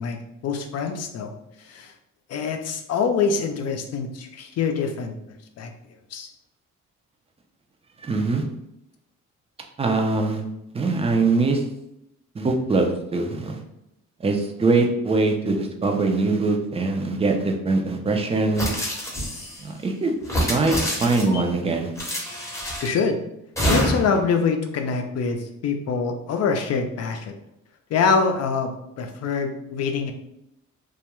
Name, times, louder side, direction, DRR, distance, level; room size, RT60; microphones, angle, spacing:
voice 1, 0.0-1.3 1.6-1.9 2.3-5.2 5.6-5.7 6.1-6.3 22.8-23.2 23.7-27.4 27.9-28.7 29.0-30.1, left 5 dB, 55° left, 5 dB, 0.5 m, -25 dB
voice 2, 8.0-8.4 9.8-10.4 10.7-11.6 12.3-13.6 14.2-18.7 19.6-20.1 20.5-21.9, right 3 dB, 20° right, 3 dB, 0.4 m, -22 dB
sound 1, 18.6-19.6 20.2-21.4 22.0-23.0 23.6-24.2, equal, 10° left, 0.7 m, -26 dB
2.3 x 2.1 x 2.9 m, 0.82 s
cardioid pair, 90°, 30 cm